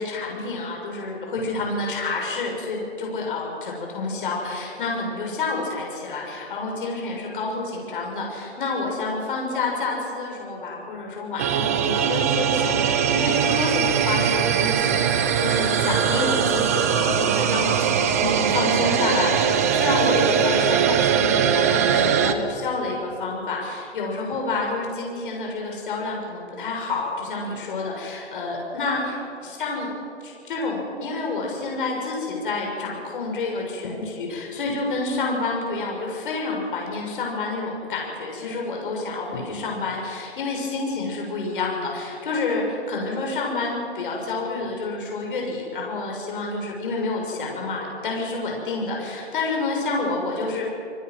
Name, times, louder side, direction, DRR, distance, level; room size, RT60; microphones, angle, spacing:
voice 1, 0.0-29.9 30.2-50.6, left 3 dB, 50° left, -1 dB, 6.5 m, -28 dB
sound 1, 11.4-22.3, right 7 dB, 15° right, 0.6 m, -21 dB
27.5 x 21.5 x 6.2 m, 2.8 s
hypercardioid pair, 160°, 34 cm